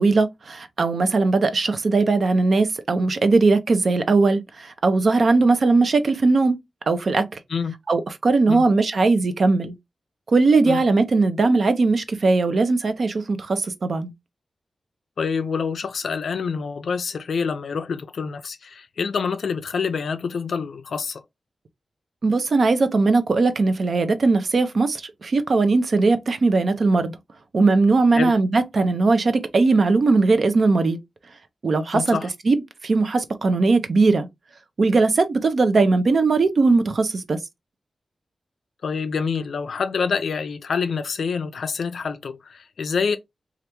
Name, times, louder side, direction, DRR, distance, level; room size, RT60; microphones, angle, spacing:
voice 1, 0.0-6.6 6.9-7.4 7.9-9.7 10.3-14.1 22.2-27.1 27.5-31.0 31.6-32.2 32.5-32.6 32.8-34.3 34.8-37.4, right 3 dB, 60° right, 0.5 m, -19 dB
voice 2, 15.2-21.2 28.1-28.4 31.9-32.3 38.8-43.2, left 5 dB, 85° left, 0.3 m, -26 dB
3.3 x 2.4 x 2.9 m
wide cardioid pair, 95°, 0 cm